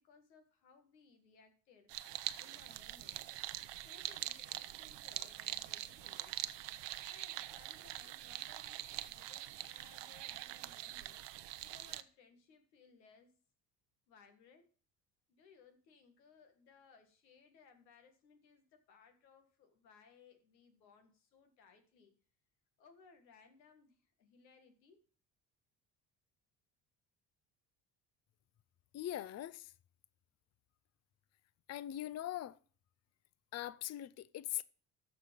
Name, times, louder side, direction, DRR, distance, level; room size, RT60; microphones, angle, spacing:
voice 1, 0.0-1.9 2.4-3.3 3.8-6.4 7.0-11.2 11.6-13.4 14.1-14.7 15.3-22.1 22.8-25.0, left 5 dB, 90° left, 1.7 m, -64 dB
sound 1, 1.9-12.0, right 14 dB, 60° right, 0.8 m, -44 dB
voice 2, 28.9-29.7 31.7-32.6 33.5-34.6, left 13 dB, 35° left, 0.5 m, -41 dB
14.0 x 4.9 x 5.1 m
hypercardioid pair, 60°, 49 cm